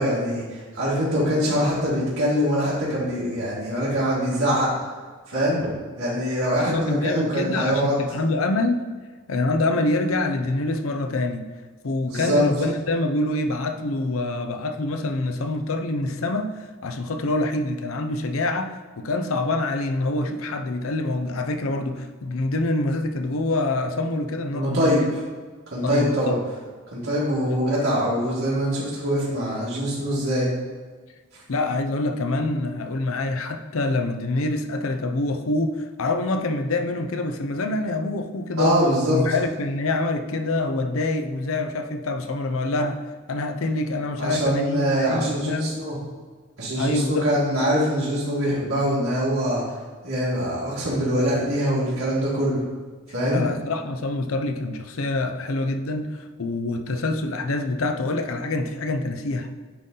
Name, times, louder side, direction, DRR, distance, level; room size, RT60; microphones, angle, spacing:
voice 1, 0.0-4.7 5.3-5.7 6.0-8.0 12.0-12.5 24.5-25.0 25.7-26.4 26.9-30.5 38.6-39.2 44.2-46.0 46.6-49.6 50.0-52.6 53.1-53.5, equal, 85° right, -8 dB, 2.1 m, -23 dB
voice 2, 6.6-8.8 9.3-11.4 11.8-16.5 16.8-25.0 25.8-26.4 27.5-27.6 31.5-38.8 39.1-43.0 43.3-45.7 46.8-47.3 53.3-59.5, left 2 dB, 80° left, 6 dB, 0.6 m, -26 dB
9.3 x 3.8 x 3.8 m, 1.5 s
head